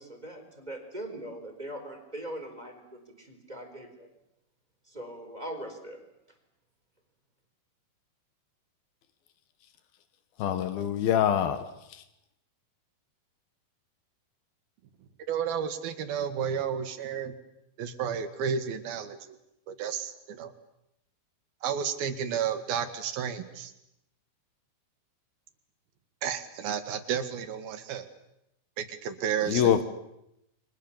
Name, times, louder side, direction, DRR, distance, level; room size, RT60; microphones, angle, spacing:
voice 1, 0.0-4.1 4.9-6.0, right 1 dB, 10° right, 3 dB, 4.1 m, -41 dB
voice 2, 10.4-12.0 29.5-29.8, left 9 dB, 90° left, 10 dB, 3.3 m, -25 dB
voice 3, 15.3-17.4 17.8-19.4 19.7-20.5 21.6-23.7 26.2-28.1 28.8-29.8, right 7 dB, 90° right, 9 dB, 3.7 m, -32 dB
29.5 x 23.5 x 7.3 m, 0.83 s
omnidirectional pair, 4.1 m